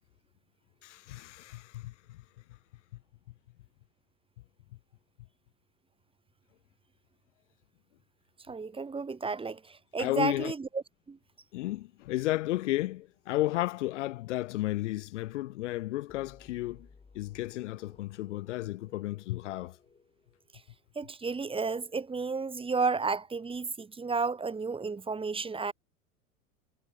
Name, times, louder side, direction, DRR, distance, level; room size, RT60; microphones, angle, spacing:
voice 1, 0.8-2.2 10.0-10.5 11.5-16.9 17.1-19.8, left 17 dB, 55° left, 1.1 m, -33 dB
voice 2, 8.5-11.2 20.9-25.7, right 4 dB, 10° right, 3.1 m, -32 dB
sound 1, 16.1-20.8, left 4 dB, 15° left, 5.7 m, -58 dB
figure-of-eight pair, 90°, 44 cm